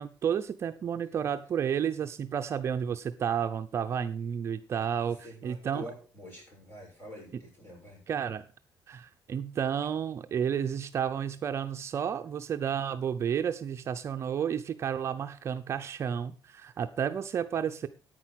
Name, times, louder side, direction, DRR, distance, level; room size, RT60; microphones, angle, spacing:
voice 1, 0.0-5.2 5.4-5.8 8.1-8.4 8.9-17.9, right 8 dB, 35° right, 7 dB, 0.6 m, -31 dB
voice 2, 5.0-8.0, equal, 30° left, -2 dB, 7.5 m, -46 dB
10.0 x 9.1 x 6.3 m, 0.39 s
cardioid pair, 175°, 7 cm